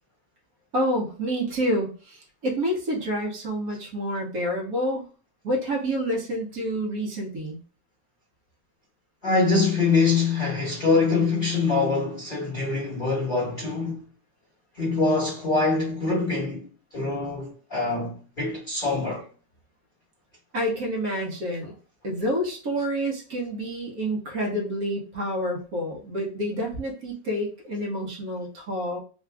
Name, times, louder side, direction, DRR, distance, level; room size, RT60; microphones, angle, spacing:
voice 1, 0.7-5.0 5.4-7.6 20.5-21.7 22.0-29.0, equal, 60° right, 1.4 m, -28 dB
voice 2, 9.2-14.0 14.8-16.7 16.9-19.2, left 3 dB, 35° left, 1.1 m, -24 dB
3.6 x 2.4 x 3.3 m
omnidirectional pair, 1.9 m